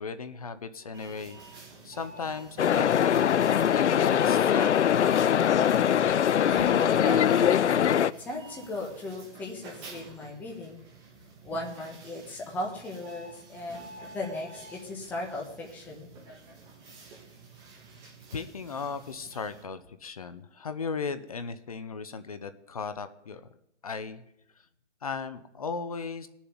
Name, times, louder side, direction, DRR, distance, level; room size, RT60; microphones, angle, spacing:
voice 1, 0.0-3.4 3.6-5.2 18.3-23.5 23.8-24.2 25.0-26.3, left 5 dB, 30° left, 11 dB, 0.7 m, -36 dB
sound 1, 0.9-19.6, right 3 dB, 10° right, 1.9 m, -49 dB
sound 2, 2.6-8.1, left 9 dB, 75° left, 0.6 m, -22 dB
voice 2, 6.5-10.8 11.4-13.8 14.1-16.1, left 2 dB, 5° left, -1 dB, 1.3 m, -37 dB
18.5 x 7.1 x 9.4 m, 0.78 s
hypercardioid pair, 165°, 35 cm